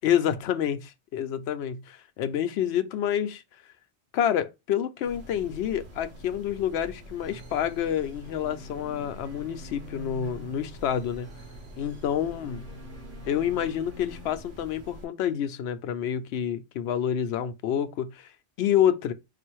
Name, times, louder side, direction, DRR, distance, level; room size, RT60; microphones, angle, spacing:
voice 1, 0.0-3.4 4.1-11.3 11.8-12.6 13.3-18.3 18.6-19.1, left 9 dB, 70° left, 0.8 m, -28 dB
sound 1, 5.0-15.0, equal, 65° right, 1.4 m, -46 dB
sound 2, 7.2-14.9, equal, 15° right, 1.2 m, -48 dB
4.1 x 2.4 x 4.5 m
omnidirectional pair, 1.2 m